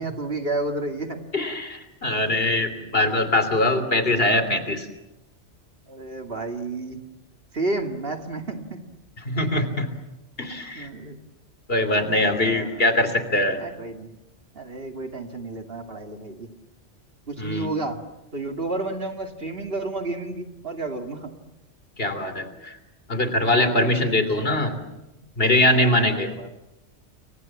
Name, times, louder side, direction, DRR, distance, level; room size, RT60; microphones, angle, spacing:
voice 1, 0.0-1.2 5.9-7.0 7.5-8.8 10.7-11.2 12.4-12.8 13.5-14.1 14.5-16.5 17.3-18.0 18.3-21.3 23.5-23.9 25.7-26.5, right 2 dB, 55° right, 5 dB, 2.6 m, -31 dB
voice 2, 1.3-4.9 9.3-9.9 10.4-10.9 11.7-13.6 17.4-17.7 22.0-22.8 23.1-24.8 25.4-26.3, left 1 dB, 55° left, 9 dB, 3.4 m, -22 dB
30.0 x 24.5 x 7.3 m, 1.0 s
omnidirectional pair, 1.2 m